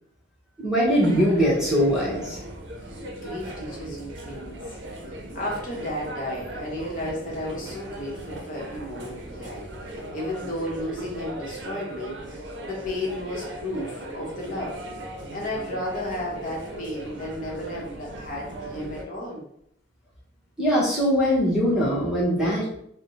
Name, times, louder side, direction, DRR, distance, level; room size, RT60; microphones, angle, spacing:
voice 1, 0.6-2.4 20.6-22.8, equal, 5° right, -6 dB, 0.8 m, -22 dB
sound 1, 0.9-19.0, right 1 dB, 75° right, 0.6 m, -38 dB
voice 2, 2.8-4.8 5.3-12.2 12.6-14.8 15.3-19.4, left 1 dB, 45° left, -3 dB, 1.1 m, -33 dB
3.4 x 2.1 x 4.0 m, 0.72 s
head